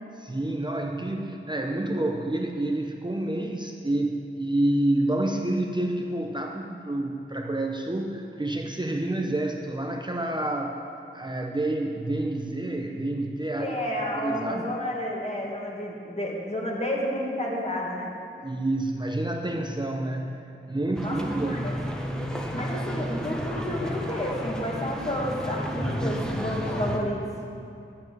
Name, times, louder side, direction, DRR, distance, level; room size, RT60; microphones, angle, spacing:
voice 1, 0.1-10.8 11.1-13.8 14.2-14.8 18.4-20.4 20.7-21.7, right 1 dB, 20° right, 1 dB, 0.8 m, -28 dB
voice 2, 13.6-18.1 21.0-21.7 22.5-27.3, left 1 dB, 30° left, -3 dB, 2.2 m, -31 dB
sound 1, 20.9-27.0, equal, 5° left, 1.2 m, -31 dB
8.8 x 7.7 x 7.8 m, 2.6 s
wide cardioid pair, 50°, 21 cm